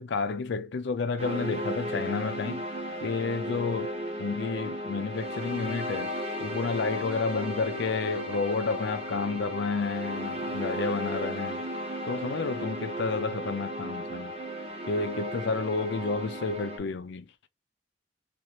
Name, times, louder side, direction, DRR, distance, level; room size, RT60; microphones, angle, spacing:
voice 1, 0.0-2.6 3.0-6.1 6.4-11.6 12.1-14.3 14.9-17.3, left 4 dB, 65° left, 0.4 m, -30 dB
sound 1, 1.2-16.8, equal, 35° right, 0.9 m, -35 dB
3.0 x 2.5 x 2.7 m
head